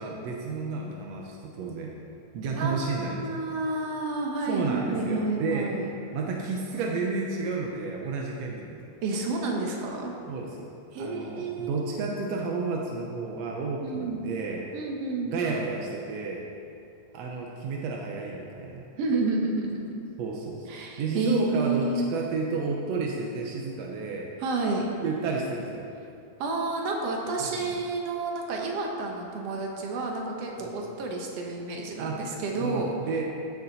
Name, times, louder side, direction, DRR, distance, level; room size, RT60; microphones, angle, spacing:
voice 1, 0.0-1.9 2.3-3.5 4.4-5.8 6.1-8.8 10.3-10.7 11.0-14.7 15.2-16.5 17.1-18.9 20.2-20.7 21.0-24.3 25.0-25.9 27.4-27.7 30.6-30.8 32.0-32.2 32.5-33.2, right 4 dB, 75° right, 0 dB, 1.5 m, -31 dB
voice 2, 2.6-5.9 9.0-10.1 10.9-11.7 13.8-14.2 14.7-15.3 19.0-20.0 20.7-22.1 24.4-24.9 26.4-33.0, right 3 dB, 60° right, 0 dB, 1.8 m, -30 dB
14.0 x 7.2 x 4.1 m, 2.6 s
omnidirectional pair, 3.9 m